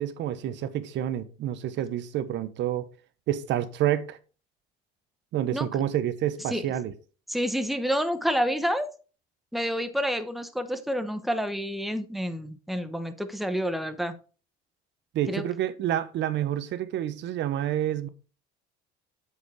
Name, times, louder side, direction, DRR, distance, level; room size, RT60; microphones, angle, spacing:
voice 1, 0.0-2.9 3.3-4.2 5.3-6.9 15.1-18.1, right 11 dB, 60° right, 1.0 m, -28 dB
voice 2, 7.3-8.9 9.5-14.1 15.3-15.4, equal, ahead, 1.0 m, -28 dB
8.5 x 5.1 x 4.7 m
cardioid pair, 110°, 21 cm